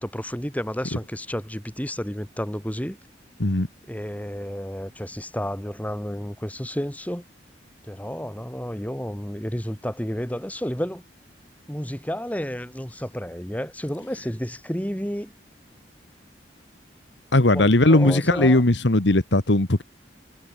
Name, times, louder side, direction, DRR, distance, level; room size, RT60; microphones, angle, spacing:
voice 1, 0.0-3.0 3.9-7.2 7.8-11.0 11.7-15.3 17.5-18.6, equal, 10° left, 6.2 m, -31 dB
voice 2, 17.3-19.8, left 2 dB, 85° left, 1.8 m, -18 dB
head